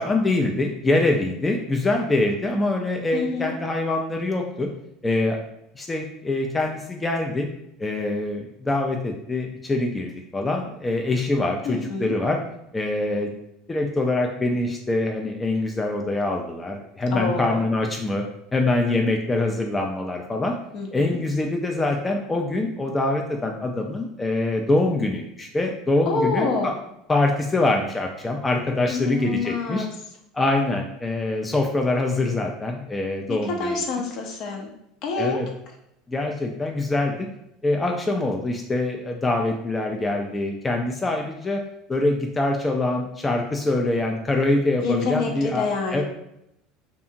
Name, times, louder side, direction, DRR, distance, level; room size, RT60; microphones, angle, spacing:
voice 1, 0.0-4.7 5.0-5.4 5.8-7.5 7.8-12.4 12.7-13.3 13.7-18.2 18.5-20.5 20.9-26.7 27.1-29.9 30.3-33.8 35.2-35.5 36.1-37.3 37.6-41.6 41.9-45.6 45.9-46.0, left 2 dB, 20° left, 2 dB, 0.3 m, -24 dB
voice 2, 3.1-3.5 11.7-12.2 17.1-17.6 20.7-21.2 26.1-26.7 28.9-29.9 33.3-34.7 35.0-35.4 44.8-46.0, left 4 dB, 55° left, 1 dB, 0.6 m, -27 dB
2.7 x 2.4 x 2.6 m, 0.80 s
hypercardioid pair, 80°, 0 cm